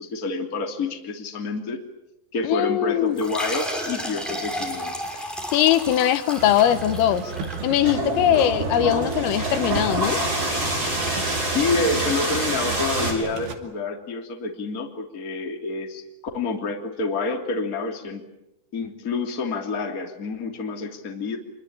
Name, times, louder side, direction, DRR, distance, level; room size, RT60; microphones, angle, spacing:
voice 1, 0.0-1.8 2.3-5.0 11.4-16.0 16.3-18.2 18.7-21.4, left 3 dB, 25° left, 3 dB, 2.4 m, -28 dB
voice 2, 2.4-3.2 5.5-7.3 7.6-10.2, left 11 dB, 80° left, 10 dB, 3.9 m, -21 dB
sound 1, 3.1-8.3, equal, ahead, 5.6 m, -33 dB
sound 2, 6.4-13.5, right 6 dB, 65° right, 4.4 m, -33 dB
sound 3, 7.6-13.1, right 1 dB, 20° right, 6.2 m, -26 dB
26.0 x 24.0 x 8.7 m, 0.91 s
omnidirectional pair, 5.8 m